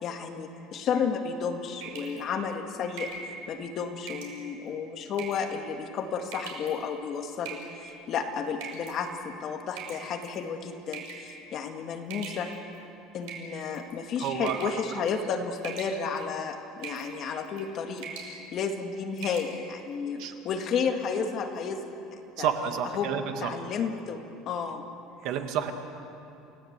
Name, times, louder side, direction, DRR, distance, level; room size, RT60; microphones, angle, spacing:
voice 1, 0.0-3.1 3.5-12.5 13.1-20.2 20.4-21.8 22.1-22.5 22.9-23.1 23.4-24.8, left 6 dB, 35° left, 4 dB, 1.8 m, -32 dB
sound 1, 1.8-2.2 3.0-3.3 4.1-4.4 5.1-5.5 6.3-6.7 7.5-7.9 8.6-8.9 9.8-10.3 10.9-11.3 12.1-12.8 13.2-13.9 14.5-14.8 15.1-15.3 15.6-16.2 16.8-17.1 17.4-17.7 18.0-18.3 18.7-18.8 19.2-19.5, right 6 dB, 80° right, 5.2 m, -40 dB
voice 2, 14.2-14.7 20.2-20.3 22.4-23.5 25.2-25.7, right 8 dB, 50° right, 6 dB, 1.8 m, -30 dB
29.0 x 17.0 x 8.1 m, 2.7 s
cardioid pair, 170°, 0 cm